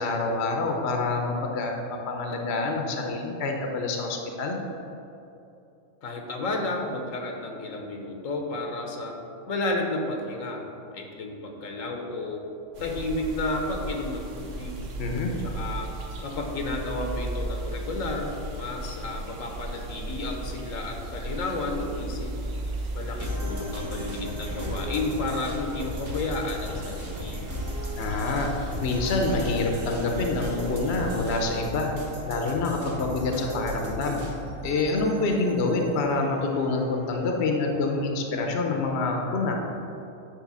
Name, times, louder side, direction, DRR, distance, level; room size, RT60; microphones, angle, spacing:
voice 1, 0.0-4.6 15.0-15.3 28.0-28.5 28.8-31.9 32.2-34.2 34.6-39.5, left 3 dB, 55° left, 2 dB, 1.0 m, -27 dB
voice 2, 6.0-9.2 9.5-12.4 12.8-14.8 15.4-15.9 16.2-22.3 22.9-27.4, left 2 dB, 75° left, 2 dB, 1.3 m, -32 dB
sound 1, 12.7-31.6, right 1 dB, 70° right, 1.2 m, -36 dB
sound 2, 23.2-38.1, equal, 45° right, 1.7 m, -37 dB
9.8 x 3.3 x 6.1 m, 2.8 s
omnidirectional pair, 1.4 m